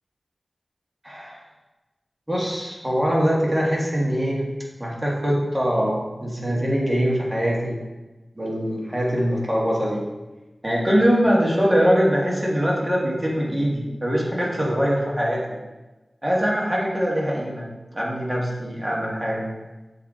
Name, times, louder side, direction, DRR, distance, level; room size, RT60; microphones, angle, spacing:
voice 1, 1.0-1.4 2.3-4.4 4.8-7.8 8.4-10.0 10.6-15.4 16.2-17.7 17.9-19.5, equal, 15° right, -4 dB, 1.7 m, -22 dB
6.8 x 3.9 x 3.7 m, 1.1 s
wide cardioid pair, 50°, 0 cm